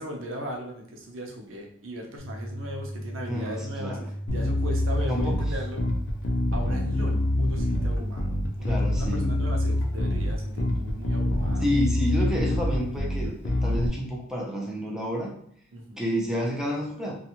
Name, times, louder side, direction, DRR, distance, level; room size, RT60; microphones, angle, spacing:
voice 1, 0.0-4.0 4.3-5.8 6.5-11.7 15.7-16.0, equal, 80° right, 1 dB, 0.6 m, -38 dB
sound 1, 2.2-12.2, equal, 85° left, 0.9 m, -36 dB
voice 2, 3.2-4.1 5.1-5.4 8.6-9.3 11.6-15.3 16.0-17.1, equal, 5° right, -2 dB, 0.5 m, -29 dB
Bass guitar, 4.3-13.9, left 1 dB, 55° left, 0.4 m, -26 dB
2.5 x 2.3 x 2.8 m, 0.65 s
head